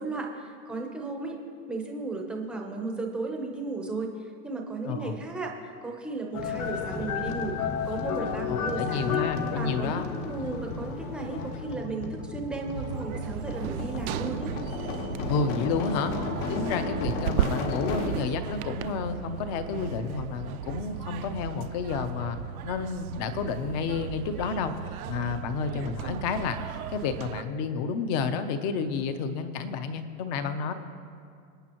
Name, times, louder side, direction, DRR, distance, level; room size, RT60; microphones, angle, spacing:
voice 1, 0.0-1.4 1.7-7.6 7.8-9.2 9.6-14.5, right 3 dB, ahead, 1 dB, 0.7 m, -35 dB
voice 2, 4.8-5.2 8.5-10.0 15.3-16.1 16.5-22.4 22.6-30.7, left 5 dB, 30° left, 10 dB, 0.8 m, -30 dB
sound 1, 6.3-11.8, left 9 dB, 85° left, 0.9 m, -33 dB
sound 2, 6.3-18.3 19.7-20.4 20.7-20.8, left 3 dB, 60° left, 2.0 m, -35 dB
sound 3, 12.7-27.4, right 10 dB, 85° right, 0.8 m, -36 dB
27.5 x 9.4 x 3.0 m, 2.3 s
supercardioid pair, 165°, 42 cm